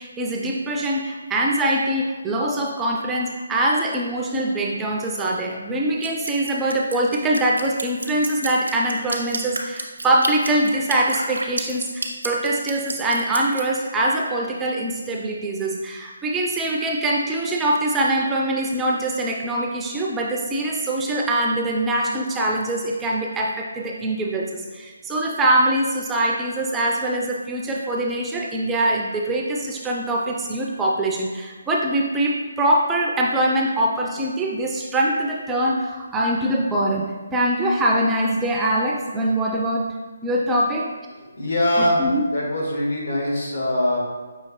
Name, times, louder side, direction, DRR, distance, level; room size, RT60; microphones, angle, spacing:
voice 1, 0.0-39.9 40.2-40.9 41.8-42.2, right 1 dB, 10° right, -2 dB, 0.3 m, -23 dB
Drip, 6.0-13.6, right 2 dB, 80° right, 0.6 m, -30 dB
voice 2, 41.3-42.0 42.3-44.0, left 1 dB, 65° left, -3 dB, 1.3 m, -22 dB
5.6 x 2.8 x 3.0 m, 1.3 s
figure-of-eight pair, 150°, 0 cm